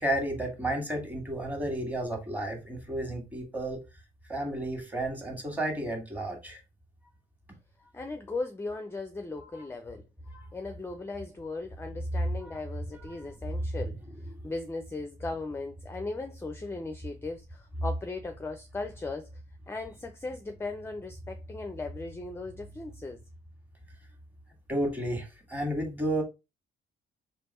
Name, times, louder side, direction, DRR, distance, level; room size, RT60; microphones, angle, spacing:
voice 1, 0.0-3.8 4.3-6.6 9.5-9.6 10.3-10.5 12.4-12.6 12.9-13.2 24.7-26.2, right 1 dB, 10° right, 1.7 m, -32 dB
voice 2, 7.9-10.0 10.5-19.3 19.7-23.2, left 3 dB, 10° left, 0.5 m, -38 dB
3.4 x 3.0 x 4.2 m
cardioid pair, 90°, 20 cm